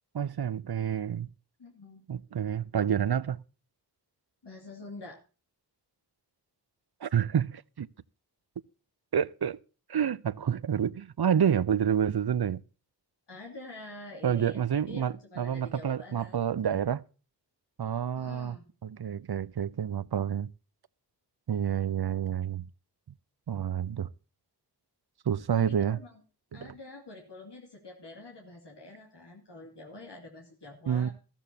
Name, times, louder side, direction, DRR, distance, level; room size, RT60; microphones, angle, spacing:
voice 1, 0.1-1.3 2.1-3.4 7.0-7.9 9.1-9.6 9.9-12.6 14.2-17.0 17.8-18.6 18.8-20.5 21.5-22.7 23.5-24.1 25.3-26.0 26.5-26.7 30.9-31.1, right 8 dB, 65° right, 0.6 m, -28 dB
voice 2, 1.6-2.1 4.4-5.2 13.3-14.6 14.9-16.4 18.2-18.6 25.7-26.2 26.5-31.1, left 2 dB, 90° left, 2.5 m, -46 dB
14.0 x 13.5 x 2.8 m
wide cardioid pair, 45°, 40 cm